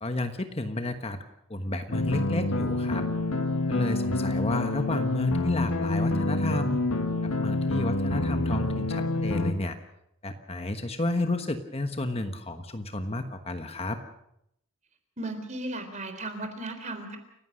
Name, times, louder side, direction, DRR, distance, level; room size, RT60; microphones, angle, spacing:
voice 1, 0.0-1.2 1.5-3.0 3.7-6.8 7.2-9.8 10.2-14.0, left 2 dB, 30° left, 7 dB, 1.3 m, -31 dB
sound 1, 1.9-9.5, left 2 dB, 90° left, 2.0 m, -27 dB
voice 2, 15.2-17.2, right 2 dB, 35° right, 7 dB, 3.8 m, -35 dB
29.5 x 16.0 x 6.4 m, 0.77 s
head